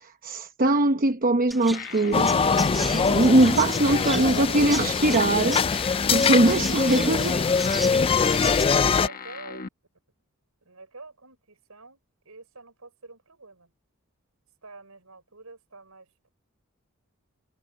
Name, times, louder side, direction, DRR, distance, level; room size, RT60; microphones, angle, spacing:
voice 1, 0.0-5.6 6.1-7.4, right 2 dB, 40° right, 0.9 m, -22 dB
Chirp tweet, 1.5-8.6, equal, ahead, 2.0 m, -37 dB
sound 1, 1.7-9.7, left 3 dB, 45° left, 1.1 m, -36 dB
sound 2, 2.1-9.1, left 5 dB, 25° left, 0.3 m, -23 dB
voice 2, 3.8-4.4 7.3-8.2 8.9-9.6 10.6-13.7 14.6-16.3, right 3 dB, 80° right, 6.1 m, -46 dB
head